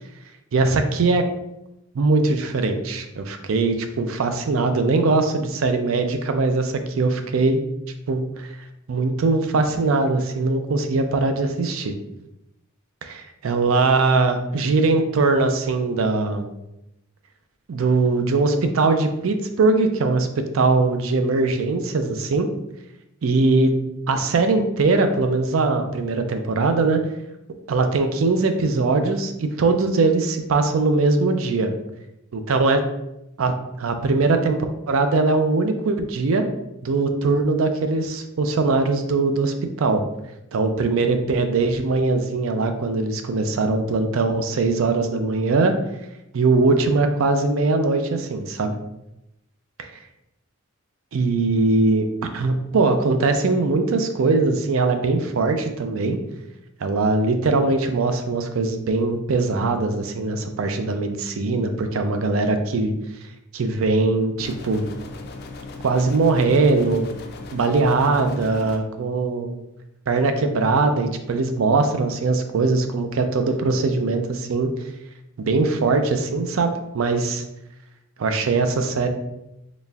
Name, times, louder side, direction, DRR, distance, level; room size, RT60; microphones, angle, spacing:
voice 1, 0.5-1.2 1.9-7.6 8.1-8.5 8.9-11.9 13.0-16.5 17.7-22.5 23.2-23.8 24.1-27.0 27.7-31.7 32.3-32.8 33.4-34.6 34.9-36.4 36.8-40.0 40.5-45.7 46.3-48.7 51.1-52.1 52.3-56.2 56.8-62.9 63.5-64.8 65.8-67.1 67.5-69.6 70.1-74.7 75.4-77.4 78.2-79.1, right 3 dB, 85° right, 7 dB, 0.4 m, -21 dB
sound 1, 64.4-68.8, left 3 dB, 50° left, 0.4 m, -37 dB
4.1 x 3.2 x 2.3 m, 0.87 s
head